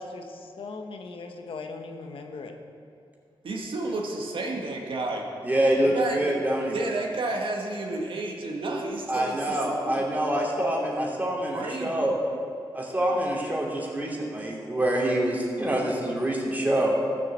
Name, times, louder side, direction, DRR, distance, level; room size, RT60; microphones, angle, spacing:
voice 1, 0.0-2.5, left 3 dB, 80° left, 4 dB, 1.2 m, -39 dB
voice 2, 3.4-5.3 5.8-6.3 6.7-10.0 11.5-12.4, right 2 dB, 70° right, 0 dB, 1.8 m, -32 dB
voice 3, 5.4-6.8 9.1-12.1 12.7-16.9, right 1 dB, 20° right, -2 dB, 2.8 m, -26 dB
14.5 x 7.6 x 7.4 m, 2.5 s
wide cardioid pair, 105°, 9 cm